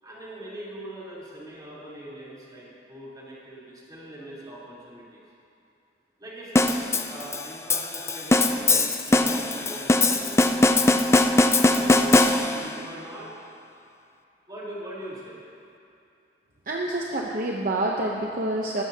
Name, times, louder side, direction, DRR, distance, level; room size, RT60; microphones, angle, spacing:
voice 1, 0.0-5.2 6.2-10.7 11.2-13.3 14.5-15.4, right 1 dB, 25° right, -8 dB, 3.8 m, -41 dB
sound 1, 6.6-12.8, left 2 dB, 15° left, 0.4 m, -21 dB
voice 2, 16.7-18.8, right 1 dB, 50° right, -2 dB, 0.9 m, -27 dB
19.5 x 14.0 x 2.9 m, 2.5 s
head